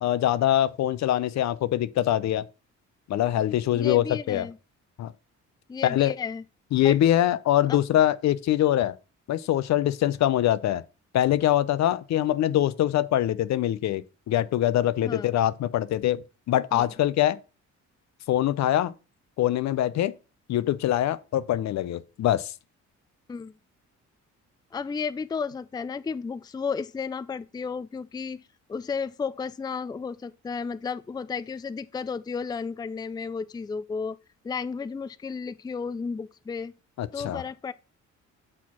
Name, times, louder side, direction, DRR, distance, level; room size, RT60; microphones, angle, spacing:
voice 1, 0.0-2.4 3.1-4.5 5.0-5.1 5.8-6.1 6.7-9.0 9.3-10.8 11.1-16.2 16.5-17.4 18.3-18.9 19.4-20.1 20.5-22.5 37.0-37.4, left 12 dB, 65° left, 0.6 m, -23 dB
voice 2, 3.7-4.6 5.7-6.4 6.8-7.0 7.7-7.8 15.0-15.3 16.7-16.9 23.3-23.6 24.7-28.4 28.7-34.2 34.4-36.7 37.1-37.7, left 5 dB, 15° left, 0.4 m, -33 dB
6.3 x 4.5 x 5.9 m
cardioid pair, 90°, 30 cm